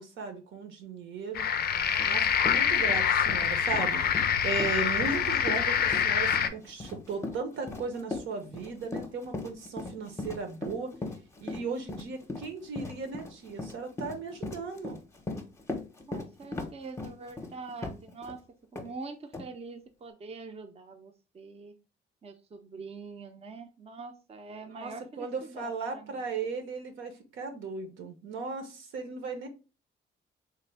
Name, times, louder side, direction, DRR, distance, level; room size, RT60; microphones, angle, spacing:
voice 1, 0.0-1.5 2.0-10.9 11.4-15.0 24.7-29.5, right 4 dB, 75° right, 6 dB, 0.8 m, -36 dB
sound 1, 1.4-6.5, left 8 dB, 50° left, 0.4 m, -26 dB
Run, 2.0-2.1 2.4-18.4 18.7-18.9 19.3-19.5, left 2 dB, 15° left, 0.7 m, -38 dB
voice 2, 16.1-21.8 22.2-26.3, right 4 dB, 30° right, 5 dB, 0.5 m, -44 dB
3.4 x 2.2 x 3.3 m, 0.31 s
cardioid pair, 90°, 20 cm